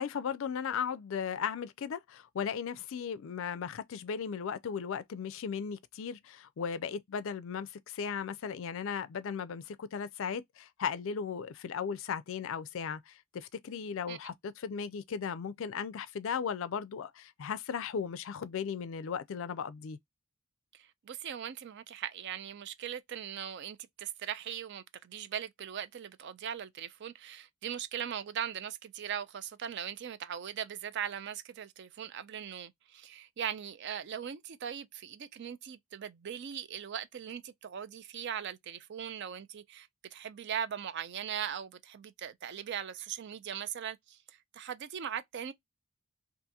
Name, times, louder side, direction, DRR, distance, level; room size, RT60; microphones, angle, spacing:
voice 1, 0.0-20.0, left 7 dB, 60° left, 0.4 m, -36 dB
voice 2, 20.7-45.5, right 9 dB, 50° right, 0.4 m, -40 dB
2.8 x 2.5 x 2.2 m
head